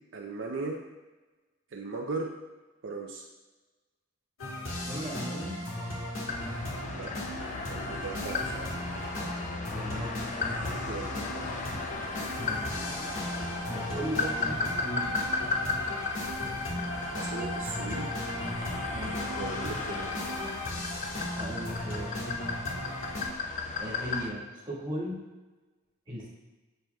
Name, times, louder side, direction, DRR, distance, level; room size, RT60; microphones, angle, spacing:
voice 1, 0.1-0.8 1.7-2.3 2.8-3.2 6.9-7.1 7.7-8.7 10.6-11.5 17.1-18.1 19.3-20.1, right 3 dB, 65° right, 0 dB, 0.5 m, -37 dB
sound 1, 4.4-23.2, left 1 dB, 80° left, 1.6 m, -36 dB
voice 2, 4.9-5.7 9.7-10.3 12.4-12.7 13.7-15.2 18.9-19.3 21.3-22.4 23.8-25.3 26.1-26.3, equal, 20° right, -7 dB, 1.6 m, -37 dB
sound 2, 6.3-24.3, left 4 dB, 35° left, 0.5 m, -35 dB
7.4 x 6.6 x 2.3 m, 1.2 s
head